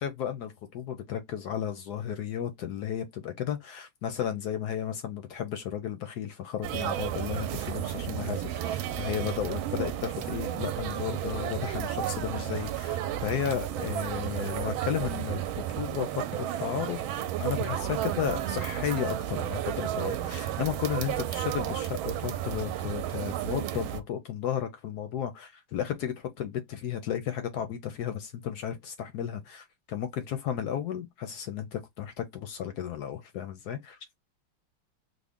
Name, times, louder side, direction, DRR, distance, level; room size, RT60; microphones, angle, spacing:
voice 1, 0.0-17.0 17.4-34.0, left 9 dB, 75° left, 0.9 m, -34 dB
sound 1, 6.6-24.0, right 11 dB, 80° right, 1.3 m, -32 dB
3.7 x 2.1 x 3.5 m
omnidirectional pair, 2.3 m